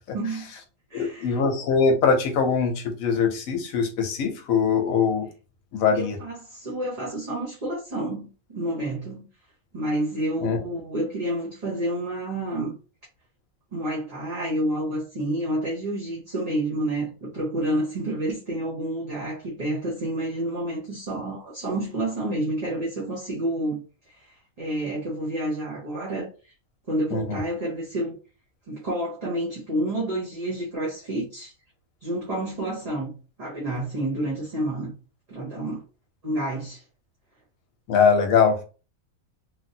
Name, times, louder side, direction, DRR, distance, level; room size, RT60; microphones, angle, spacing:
voice 1, 0.1-0.5 0.9-1.3 5.9-9.3 9.7-12.7 13.7-26.5 26.9-28.1 28.7-31.5 32.0-34.9 35.3-35.8 36.2-36.8, right 1 dB, 35° right, 0.8 m, -29 dB
voice 2, 0.9-5.3 5.7-6.2 10.4-10.6 27.1-27.4 37.9-38.6, left 5 dB, 75° left, 1.1 m, -22 dB
3.1 x 2.5 x 2.7 m
omnidirectional pair, 1.5 m